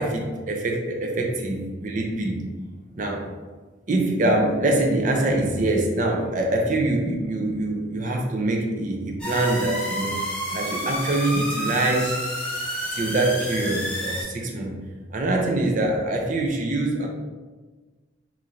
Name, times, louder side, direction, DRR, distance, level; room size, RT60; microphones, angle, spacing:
voice 1, 0.0-2.4 2.9-3.3 3.9-10.2 10.5-12.2 12.9-14.7 15.1-17.1, right 2 dB, 45° right, 1 dB, 0.5 m, -24 dB
sound 1, 9.2-14.2, equal, 5° left, 0.8 m, -30 dB
3.1 x 2.8 x 3.7 m, 1.3 s
head